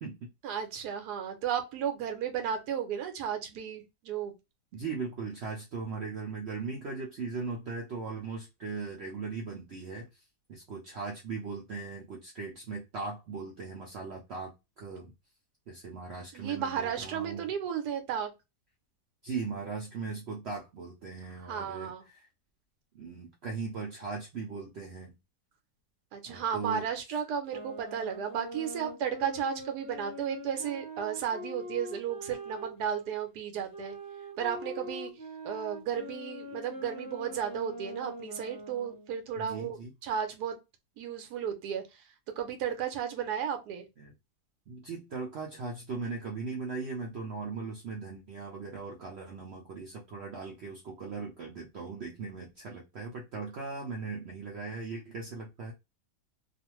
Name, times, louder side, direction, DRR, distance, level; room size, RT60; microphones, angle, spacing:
voice 1, 0.4-4.3 16.3-18.3 21.4-22.0 26.1-33.9 34.4-35.1 35.4-40.6 41.0-42.0 42.4-43.9, right 8 dB, 90° right, 1.2 m, -34 dB
voice 2, 4.7-10.2 10.5-15.1 15.7-17.5 19.2-22.3 22.9-25.1 26.3-26.8 39.4-39.9 44.0-44.1 44.7-55.7, right 4 dB, 70° right, 0.6 m, -39 dB
sound 1, 27.5-33.0 33.7-39.2, equal, 20° right, 0.7 m, -43 dB
2.5 x 2.4 x 2.9 m
omnidirectional pair, 1.7 m